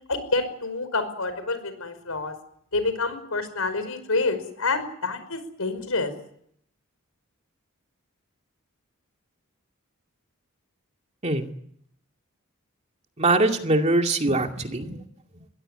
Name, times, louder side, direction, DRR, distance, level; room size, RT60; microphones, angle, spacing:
voice 1, 0.1-2.4 2.7-6.1, left 3 dB, 85° left, 11 dB, 5.2 m, -28 dB
voice 2, 13.2-15.0, right 2 dB, 30° right, 4 dB, 2.4 m, -22 dB
22.5 x 17.0 x 9.9 m, 0.70 s
head